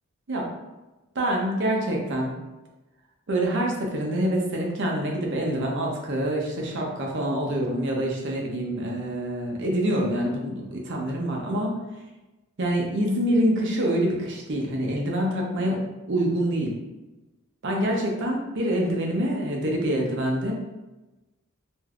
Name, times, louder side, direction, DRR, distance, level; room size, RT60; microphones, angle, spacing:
voice 1, 1.1-2.3 3.3-11.7 12.6-15.8 16.1-16.7 17.6-20.5, right 1 dB, 55° right, 0 dB, 0.6 m, -26 dB
3.4 x 2.6 x 2.3 m, 1.1 s
head